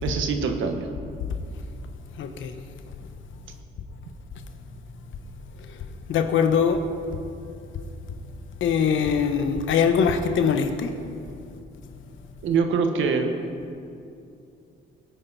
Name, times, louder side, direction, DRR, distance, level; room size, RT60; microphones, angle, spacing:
voice 1, 0.0-0.9 12.4-13.3, right 5 dB, 75° right, 5 dB, 1.5 m, -24 dB
voice 2, 2.2-2.5 6.1-6.8 8.6-10.9, left 6 dB, 75° left, 8 dB, 1.2 m, -22 dB
21.5 x 9.4 x 4.2 m, 2.6 s
cardioid pair, 90°, 20 cm